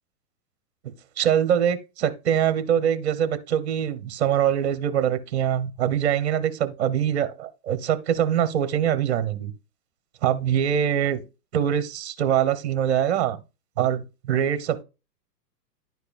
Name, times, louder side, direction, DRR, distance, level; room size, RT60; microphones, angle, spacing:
voice 1, 1.2-9.5 10.2-11.2 11.5-13.4 13.8-14.8, right 9 dB, 40° right, 0.9 m, -23 dB
10.5 x 4.7 x 2.4 m
hypercardioid pair, 170°, 49 cm